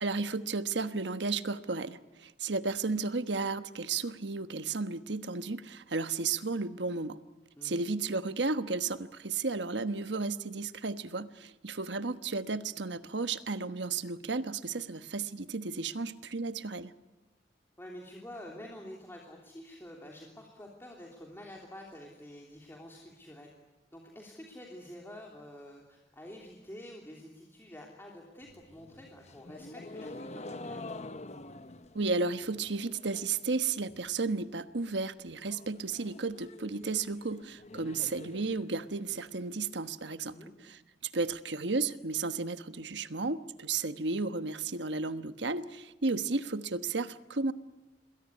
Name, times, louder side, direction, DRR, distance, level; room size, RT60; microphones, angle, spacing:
voice 1, 0.0-7.2 7.6-16.9 31.9-40.3 40.6-47.5, right 3 dB, 85° right, 11 dB, 1.2 m, -33 dB
voice 2, 17.8-23.5 23.9-30.9 40.3-40.5, left 1 dB, 15° left, -1 dB, 3.1 m, -48 dB
sound 1, 28.4-33.5 33.7-34.3 34.6-34.7 34.9-35.0 35.3-39.3, left 2 dB, 40° left, 1.0 m, -47 dB
27.5 x 21.0 x 9.7 m, 1.0 s
head